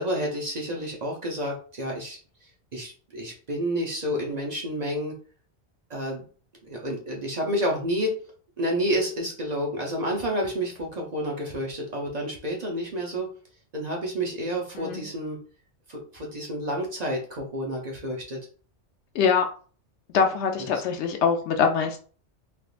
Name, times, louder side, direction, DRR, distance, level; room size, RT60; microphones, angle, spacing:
voice 1, 0.0-2.2 2.7-5.1 5.9-6.2 6.6-8.1 8.6-13.3 13.7-15.4 15.9-18.4 20.7-20.8, equal, 45° right, -1 dB, 0.7 m, -29 dB
voice 2, 20.1-22.0, left 6 dB, 75° left, 5 dB, 0.8 m, -23 dB
3.5 x 2.4 x 2.4 m, 0.40 s
omnidirectional pair, 1.2 m